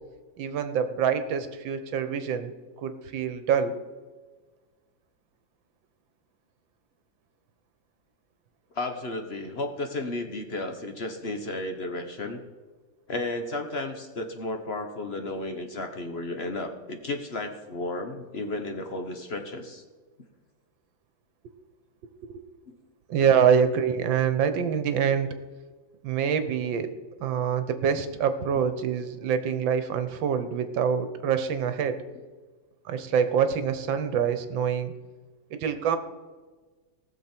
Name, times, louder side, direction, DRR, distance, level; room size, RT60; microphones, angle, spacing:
voice 1, 0.4-2.5 2.8-3.8 22.3-22.4 23.1-25.3 26.0-26.9 27.2-32.0 32.9-34.9 35.6-36.0, right 7 dB, 80° right, 9 dB, 1.7 m, -25 dB
voice 2, 8.7-12.4 13.1-19.8 22.7-22.8, left 2 dB, 40° left, 6 dB, 1.1 m, -33 dB
19.0 x 6.8 x 4.5 m, 1.4 s
omnidirectional pair, 2.1 m